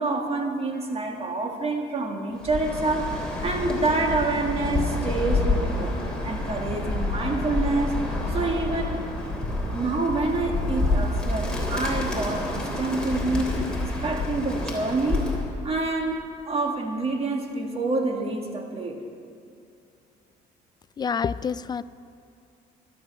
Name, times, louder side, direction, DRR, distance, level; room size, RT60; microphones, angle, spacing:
voice 1, 0.0-3.1 3.4-5.9 6.2-8.0 8.3-9.0 9.7-15.3 15.6-19.0, right 3 dB, 35° right, 3 dB, 1.9 m, -27 dB
Bird, 2.4-15.5, left 2 dB, 5° left, 3.1 m, -28 dB
voice 2, 21.0-21.8, left 6 dB, 25° left, 15 dB, 0.4 m, -27 dB
13.0 x 12.5 x 6.2 m, 2.5 s
cardioid pair, 110°, 17 cm